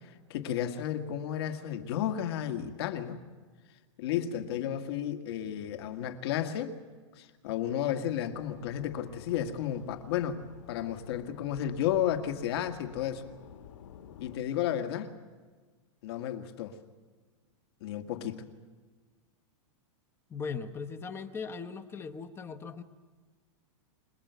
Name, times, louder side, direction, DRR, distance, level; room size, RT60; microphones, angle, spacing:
voice 1, 0.3-3.2 4.0-6.8 7.2-10.4 10.7-13.3 14.2-15.1 16.0-16.8 17.8-18.5, left 10 dB, 55° left, 2.0 m, -32 dB
sound 1, 8.3-14.4, left 9 dB, 85° left, 2.2 m, -52 dB
voice 2, 20.3-22.8, left 5 dB, 15° left, 0.9 m, -39 dB
26.5 x 19.5 x 8.2 m
supercardioid pair, 160°, 16 cm